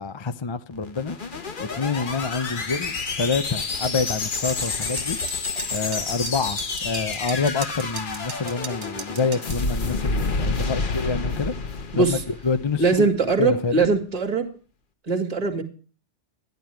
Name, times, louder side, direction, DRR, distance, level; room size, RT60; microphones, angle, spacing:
voice 1, 0.0-5.2 5.7-11.5 11.9-13.1 13.4-13.9, left 4 dB, 30° left, 0.6 m, -27 dB
sound 1, 0.7-13.1, left 4 dB, 45° left, 1.2 m, -29 dB
sound 2, 4.5-9.6, right 6 dB, 65° right, 1.4 m, -38 dB
voice 2, 12.8-14.5 15.1-15.6, right 4 dB, 35° right, 2.0 m, -21 dB
13.5 x 10.5 x 4.5 m
omnidirectional pair, 1.2 m